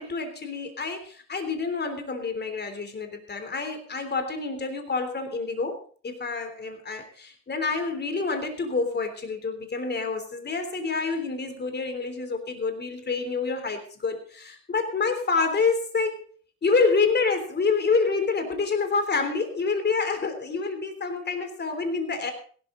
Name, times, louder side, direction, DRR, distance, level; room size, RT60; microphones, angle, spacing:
voice 1, 0.0-5.8 6.0-16.3 16.6-22.3, left 4 dB, 30° left, 7 dB, 3.4 m, -27 dB
16.5 x 12.5 x 4.0 m, 0.44 s
cardioid pair, 110°, 34 cm